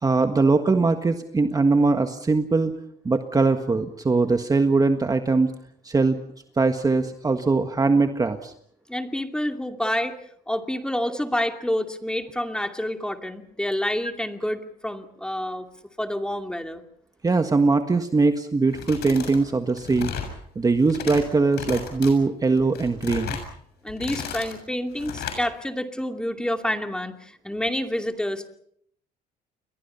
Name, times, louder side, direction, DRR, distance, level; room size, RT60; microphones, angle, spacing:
voice 1, 0.0-2.8 3.0-5.5 5.8-6.2 6.6-8.5 17.2-20.1 20.5-23.4, right 3 dB, 20° right, 7 dB, 1.5 m, -21 dB
voice 2, 8.9-10.2 10.5-15.7 16.0-16.8 23.8-28.5, left 1 dB, 5° left, 5 dB, 2.5 m, -28 dB
sound 1, 18.7-19.4 19.7-20.3 20.8-21.2 21.5-22.1 22.6-23.5 23.9-24.6 25.0-25.4, left 8 dB, 75° left, 7.0 m, -34 dB
30.0 x 22.5 x 5.7 m, 0.67 s
cardioid pair, 110°, 17 cm